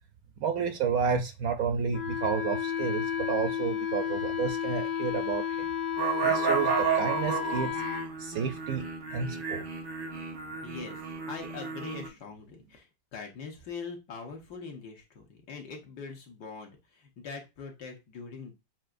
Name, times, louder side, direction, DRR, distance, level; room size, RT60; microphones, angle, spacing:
voice 1, 0.4-5.7 6.2-7.8 8.2-8.8 9.1-9.6, right 6 dB, 70° right, 7 dB, 0.9 m, -31 dB
Wind instrument woodwind instrument, 1.9-8.1, left 8 dB, 85° left, 1.4 m, -32 dB
sound 1, 6.0-12.1, right 7 dB, 85° right, 1.8 m, -32 dB
sound 2, 7.0-9.3, left 5 dB, 40° left, 1.0 m, -54 dB
voice 2, 10.6-11.0 11.3-18.6, left 5 dB, 70° left, 1 dB, 1.7 m, -42 dB
7.3 x 2.8 x 2.5 m, 0.25 s
omnidirectional pair, 1.9 m